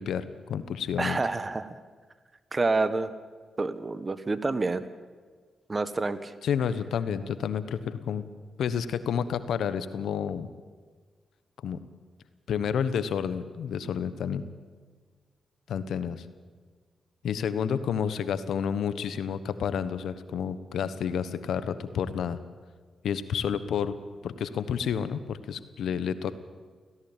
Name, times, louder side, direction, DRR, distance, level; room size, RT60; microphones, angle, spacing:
voice 1, 0.0-1.2 6.4-8.2 8.6-10.5 11.6-11.8 12.5-14.4 15.7-16.2 17.2-22.4 23.0-24.0 24.2-26.3, left 7 dB, 80° left, 13 dB, 1.1 m, -30 dB
voice 2, 1.0-1.8 2.5-3.1 3.6-4.8 5.7-6.3, right 3 dB, 35° right, 13 dB, 1.5 m, -28 dB
17.5 x 16.5 x 9.0 m, 1.5 s
supercardioid pair, 55°, 0 cm